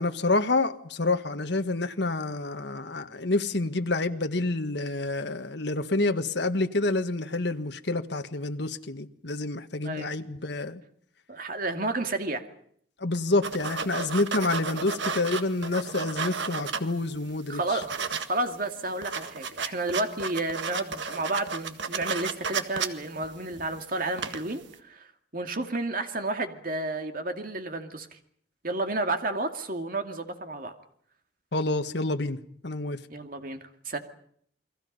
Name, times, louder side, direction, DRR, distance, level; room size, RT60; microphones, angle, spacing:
voice 1, 0.0-10.8 13.0-17.8 31.5-33.0, left 2 dB, 65° left, 1.6 m, -28 dB
voice 2, 9.8-10.1 11.3-12.4 17.5-25.1 25.3-28.1 28.6-30.7 33.1-33.6 33.9-34.0, right 2 dB, 45° right, 2.4 m, -31 dB
sound 1, 13.4-17.2 17.5-18.3 18.6-18.7 18.9-23.8 24.1-24.6, right 5 dB, 70° right, 1.8 m, -33 dB
29.5 x 22.5 x 5.5 m
head